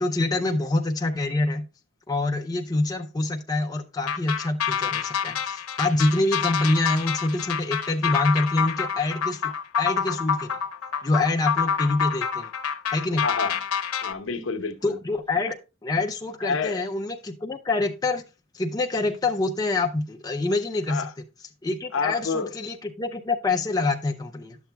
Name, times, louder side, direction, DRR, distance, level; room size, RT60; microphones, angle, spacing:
voice 1, 0.0-1.7 2.1-9.5 9.8-10.5 11.0-12.5 12.9-13.2 14.8-15.5 15.8-18.2 18.5-21.1 21.6-24.6, left 2 dB, 15° left, 0.5 m, -26 dB
sound 1, 4.1-14.1, left 7 dB, 90° left, 0.7 m, -27 dB
voice 2, 13.2-13.6 14.0-15.0 16.4-16.8 20.9-21.1 21.9-22.5, left 4 dB, 60° left, 0.9 m, -28 dB
11.5 x 7.1 x 2.2 m
head